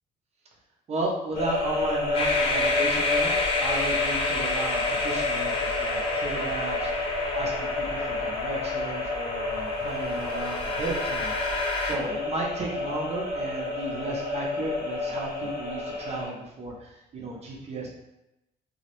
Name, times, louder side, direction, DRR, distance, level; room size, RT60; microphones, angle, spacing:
voice 1, 0.9-17.9, right 2 dB, 40° right, -1 dB, 0.6 m, -34 dB
sound 1, 1.3-16.3, left 2 dB, 80° left, 0.9 m, -30 dB
sound 2, 2.1-11.9, left 3 dB, 35° left, 0.4 m, -30 dB
2.2 x 2.0 x 2.9 m, 0.90 s
cardioid pair, 110°, 17 cm